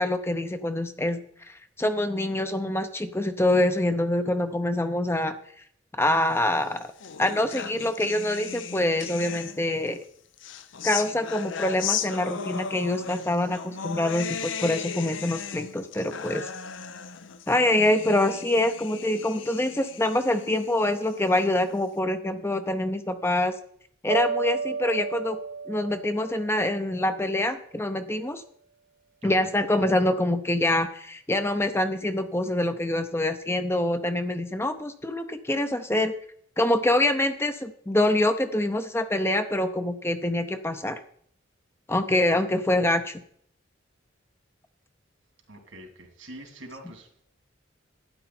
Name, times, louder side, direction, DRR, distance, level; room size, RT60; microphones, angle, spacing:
voice 1, 0.0-5.3 6.0-6.9 7.2-10.0 10.8-16.5 17.5-23.5 24.0-25.4 25.7-28.4 29.2-36.1 36.6-41.0 41.9-43.2, left 1 dB, 15° left, 9 dB, 0.6 m, -25 dB
sound 1, 6.5-9.9 10.4-21.8, left 7 dB, 75° left, 0.7 m, -36 dB
sound 2, 24.1-27.2, right 5 dB, 45° right, 0.6 m, -33 dB
voice 2, 45.5-47.2, right 1 dB, 80° right, 3 dB, 3.1 m, -45 dB
12.0 x 9.8 x 4.3 m, 0.63 s
head